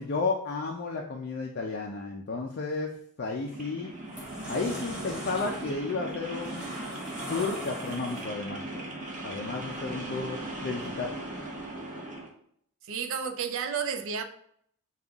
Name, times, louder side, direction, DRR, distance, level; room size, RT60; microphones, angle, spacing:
voice 1, 0.0-4.0 4.5-6.7 7.3-8.6 9.2-11.1, left 4 dB, 45° left, 1 dB, 0.4 m, -32 dB
sound 1, 3.2-3.4 3.9-8.6, equal, 5° right, 1.6 m, -41 dB
sound 2, 3.4-12.3, right 1 dB, 35° right, 0.8 m, -39 dB
voice 2, 12.8-14.2, right 6 dB, 60° right, 7 dB, 0.5 m, -31 dB
5.3 x 2.4 x 3.5 m, 0.67 s
head